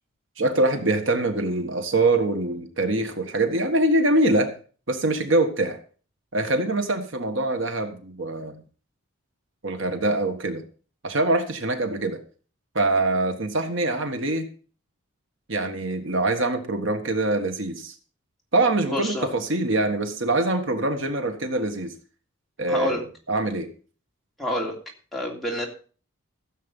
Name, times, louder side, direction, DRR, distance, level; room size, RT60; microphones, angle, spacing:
voice 1, 0.4-4.5 4.9-5.8 6.3-8.6 9.6-10.6 11.0-12.2 12.7-14.5 15.5-17.9 18.5-21.9 22.6-23.7, right 2 dB, 65° right, 6 dB, 1.6 m, -24 dB
voice 2, 18.8-19.3 22.7-23.0 24.4-24.7 25.1-25.7, left 1 dB, ahead, -3 dB, 3.0 m, -28 dB
15.0 x 7.7 x 5.5 m, 0.39 s
head